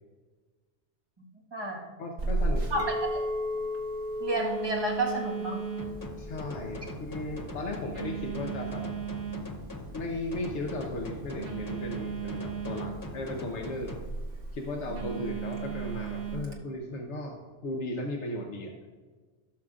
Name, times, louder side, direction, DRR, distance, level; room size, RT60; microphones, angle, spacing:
voice 1, 1.2-1.9 2.7-3.2 4.2-5.6, right 2 dB, 20° right, -3 dB, 1.4 m, -31 dB
voice 2, 2.0-2.9 6.2-8.9 9.9-14.0 14.5-17.4 17.6-18.7, left 2 dB, 90° left, 1 dB, 1.2 m, -36 dB
Telephone, 2.2-16.6, right 5 dB, 85° right, 1.3 m, -37 dB
Chink clink, 2.8-7.1 7.5-7.9, left 2 dB, 50° right, 0.4 m, -36 dB
sound 1, 5.8-14.0, left 2 dB, 25° left, 0.5 m, -41 dB
16.0 x 6.4 x 2.4 m, 1.4 s
omnidirectional pair, 1.1 m